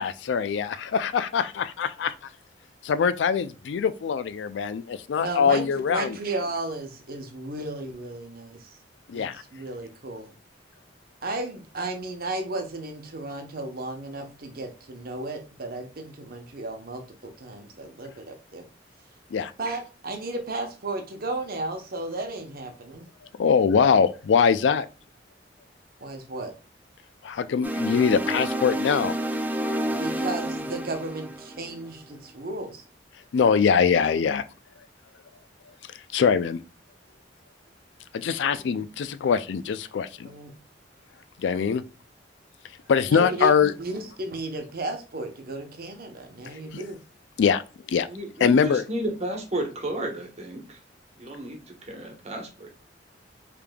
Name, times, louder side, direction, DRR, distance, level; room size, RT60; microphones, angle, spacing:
voice 1, 0.0-2.1 2.8-6.2 9.1-9.4 19.3-19.5 23.4-24.9 27.2-29.1 33.3-34.4 36.1-36.6 38.1-40.3 41.4-41.8 42.9-43.7 46.7-46.8 47.4-47.6 47.9-48.1 48.4-48.8, left 6 dB, 75° left, 0.3 m, -23 dB
voice 2, 5.1-8.8 9.1-10.3 11.2-18.7 19.6-23.1 26.0-26.5 30.0-32.8 40.2-40.5 43.1-47.0, right 2 dB, 55° right, 0.8 m, -34 dB
sound 1, 27.6-32.0, right 1 dB, 10° right, 0.4 m, -29 dB
voice 3, 38.5-38.8 48.1-50.8 51.2-52.7, right 1 dB, 40° right, 1.1 m, -33 dB
5.0 x 3.3 x 2.2 m
head